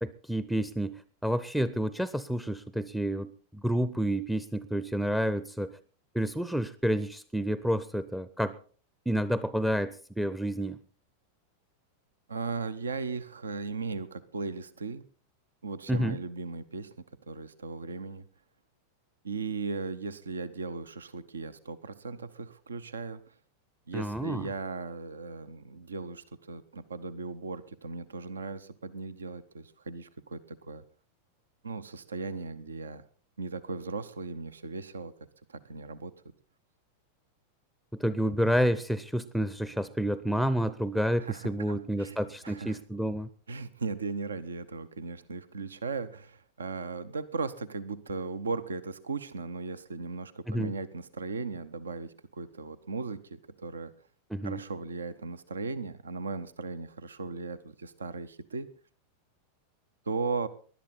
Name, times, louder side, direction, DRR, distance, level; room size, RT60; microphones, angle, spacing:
voice 1, 0.0-5.8 6.1-8.6 9.1-10.8 15.9-16.2 23.9-24.5 37.9-43.3 50.5-50.7 54.3-54.6, equal, ahead, 16 dB, 0.6 m, -29 dB
voice 2, 12.3-15.0 15.6-16.9 17.2-18.3 19.2-23.3 23.9-30.8 31.6-33.0 33.4-35.1 35.5-36.1 41.2-42.2 42.4-42.8 43.5-53.9 54.4-58.7 60.1-60.5, right 4 dB, 70° right, 15 dB, 0.7 m, -37 dB
19.5 x 11.5 x 4.1 m, 0.41 s
figure-of-eight pair, 90°, 0 cm